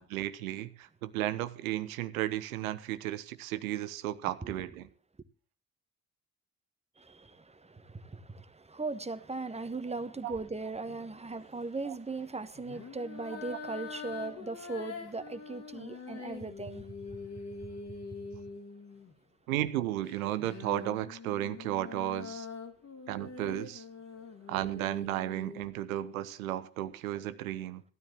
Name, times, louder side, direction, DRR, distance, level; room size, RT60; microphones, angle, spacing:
voice 1, 0.0-4.9 10.2-10.4 11.8-11.9 19.5-22.5 23.1-23.8 24.5-27.8, right 13 dB, 75° right, 0.9 m, -34 dB
voice 2, 7.0-16.9, right 3 dB, 15° right, 1.3 m, -38 dB
sound 1, 10.9-11.2 12.6-19.2 20.0-25.7, left 4 dB, 40° left, 2.2 m, -44 dB
16.5 x 12.5 x 2.9 m
figure-of-eight pair, 45°, 42 cm